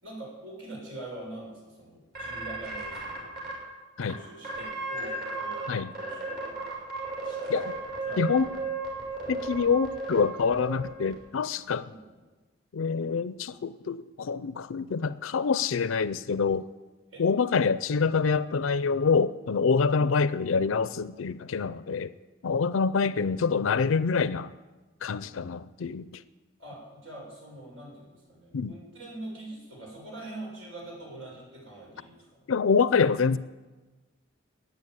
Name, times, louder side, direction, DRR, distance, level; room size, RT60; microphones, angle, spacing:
voice 1, 0.0-3.5 4.0-6.6 7.2-7.6 8.0-8.5 11.8-12.2 17.1-17.2 23.0-23.1 26.6-32.1, right 1 dB, 90° right, 6.9 m, -44 dB
sound 1, 2.1-3.5 4.0-4.1 4.4-5.7 5.9-11.1, right 3 dB, 50° right, 6.0 m, -34 dB
voice 2, 8.2-8.5 9.3-11.9 12.7-16.7 17.2-22.1 22.4-24.5 25.0-26.2 28.5-28.7 32.5-33.4, left 5 dB, 90° left, 0.5 m, -26 dB
15.0 x 9.4 x 9.5 m
head